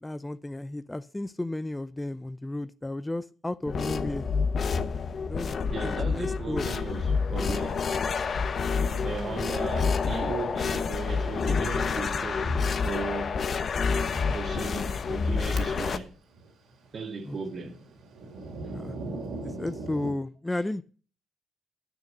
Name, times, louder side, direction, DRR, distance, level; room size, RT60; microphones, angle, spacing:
voice 1, 0.0-4.3 5.3-6.6 17.2-17.4 18.7-19.0 19.4-20.8, left 1 dB, 10° left, 0.4 m, -33 dB
sound 1, 3.7-16.0, left 5 dB, 50° left, 1.0 m, -28 dB
voice 2, 5.7-7.9 9.0-13.4 14.3-16.1 16.9-17.8 18.6-18.8 20.5-20.8, right 4 dB, 45° right, 1.8 m, -36 dB
Thunder, 7.9-8.0 9.2-9.5 9.8-9.9 10.5-10.6 11.5-11.8 12.1-12.3 13.2-13.3 13.9-14.0 14.3-14.5 15.0-16.0 16.3-20.1, right 2 dB, 70° right, 2.5 m, -40 dB
10.0 x 6.6 x 6.4 m
cardioid pair, 90°, 0 cm